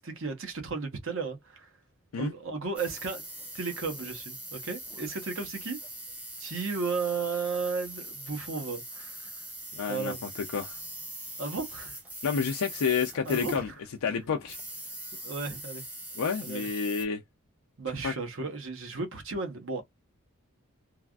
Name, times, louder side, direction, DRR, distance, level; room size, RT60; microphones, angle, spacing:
voice 1, 0.0-1.7 2.2-3.2 3.5-5.8 6.4-9.3 9.9-10.2 11.4-12.0 13.2-13.6 14.1-14.3 15.2-15.8 16.4-16.7 17.8-19.8, right 4 dB, 60° right, 0.9 m, -34 dB
sound 1, 2.8-13.7 14.3-17.1, right 1 dB, 5° right, 0.7 m, -42 dB
voice 2, 9.7-10.8 12.2-13.7 14.0-14.6 16.2-17.2 18.0-18.1, left 6 dB, 85° left, 0.4 m, -29 dB
3.2 x 2.4 x 2.2 m
head